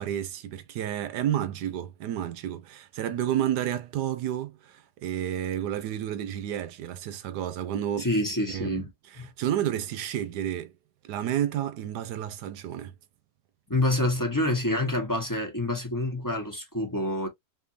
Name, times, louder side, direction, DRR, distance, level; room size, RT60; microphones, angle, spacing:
voice 1, 0.0-8.1 8.5-8.8 9.1-10.7 11.0-12.9, right 11 dB, 90° right, 1.3 m, -30 dB
voice 2, 8.0-8.9 9.2-9.3 13.7-17.3, left 1 dB, 15° left, 0.8 m, -27 dB
4.4 x 2.8 x 2.5 m
omnidirectional pair, 1.8 m